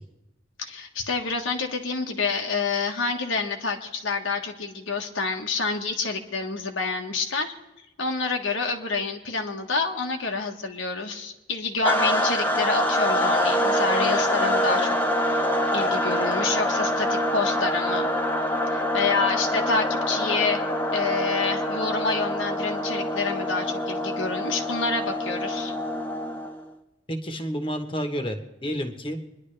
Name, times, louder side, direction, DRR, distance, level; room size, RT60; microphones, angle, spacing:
voice 1, 0.6-7.5 8.0-14.9 15.3-15.4 15.7-18.1 18.7-20.6 20.9-25.7, left 4 dB, 90° left, 3 dB, 1.4 m, -28 dB
sound 1, 11.8-26.6, left 1 dB, 10° left, 0.8 m, -25 dB
voice 2, 27.1-29.2, equal, 25° left, 6 dB, 1.1 m, -30 dB
24.5 x 11.0 x 3.3 m, 0.99 s
head